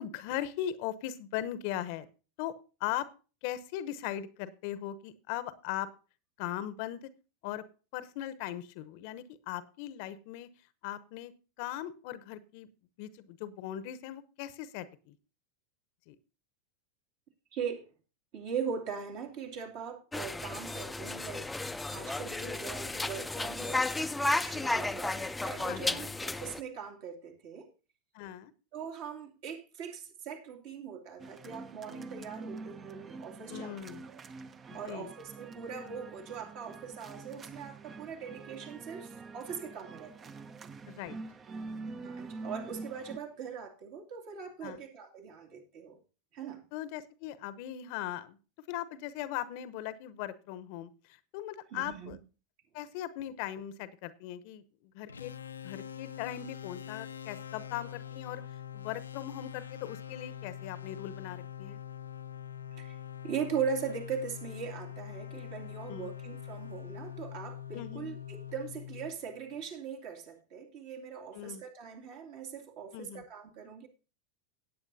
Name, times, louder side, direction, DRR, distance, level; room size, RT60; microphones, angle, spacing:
voice 1, 0.0-2.1 2.4-2.5 2.8-3.1 3.4-5.9 6.4-7.1 7.4-7.6 7.9-10.5 10.8-11.3 11.6-12.7 13.0-15.1 16.1-16.2 25.7-26.0 28.1-28.5 33.5-34.0 34.9-35.1 40.9-41.2 44.6-44.8 46.7-48.4 48.7-50.9 51.3-52.2 52.7-54.6 54.9-55.3 55.6-58.4 58.7-61.8 65.9-66.1 67.7-68.1 71.3-71.6 72.9-73.2, left 12 dB, 55° left, 0.9 m, -39 dB
voice 2, 17.5-17.9 18.3-21.6 21.9-24.1 24.4-27.7 28.7-33.8 34.1-34.2 34.7-40.5 42.0-46.0 46.3-46.6 51.7-52.2 62.7-63.0 63.2-73.9, right 6 dB, 55° right, 2.5 m, -40 dB
sound 1, 20.1-26.6, left 2 dB, 10° left, 0.6 m, -33 dB
sound 2, 31.2-43.2, right 3 dB, 25° right, 0.8 m, -45 dB
sound 3, 55.1-69.7, left 9 dB, 80° left, 0.6 m, -44 dB
17.5 x 8.6 x 2.7 m
figure-of-eight pair, 85°, 0 cm